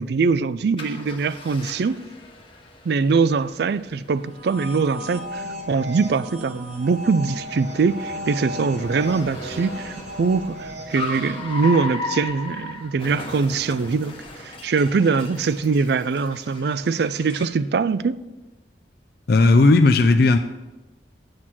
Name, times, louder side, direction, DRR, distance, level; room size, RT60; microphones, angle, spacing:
voice 1, 0.0-2.0 2.9-18.1, right 4 dB, 60° right, 0.4 m, -22 dB
Car, 0.8-17.7, left 2 dB, 30° left, 1.1 m, -38 dB
sound 1, 4.2-11.6, equal, 40° right, 1.0 m, -36 dB
voice 2, 19.3-20.4, left 3 dB, 55° left, 0.4 m, -15 dB
9.0 x 6.4 x 5.9 m
head